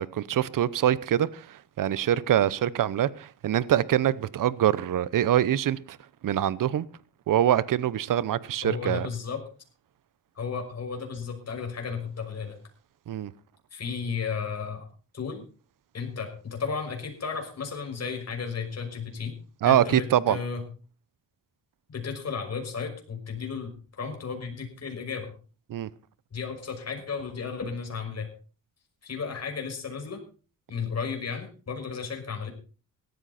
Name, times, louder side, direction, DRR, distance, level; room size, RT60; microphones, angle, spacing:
voice 1, 0.0-6.0 6.2-6.8 7.3-9.1 13.1-13.3 19.6-20.4 25.7-25.9, right 11 dB, 65° right, 0.9 m, -24 dB
voice 2, 8.6-9.4 10.4-12.6 13.7-14.9 15.1-15.4 15.9-19.3 19.6-20.6 21.9-23.7 24.0-25.3 26.3-28.3 29.0-30.2 30.7-32.5, left 5 dB, 45° left, 5.9 m, -34 dB
17.5 x 13.5 x 4.3 m
cardioid pair, 95°, 34 cm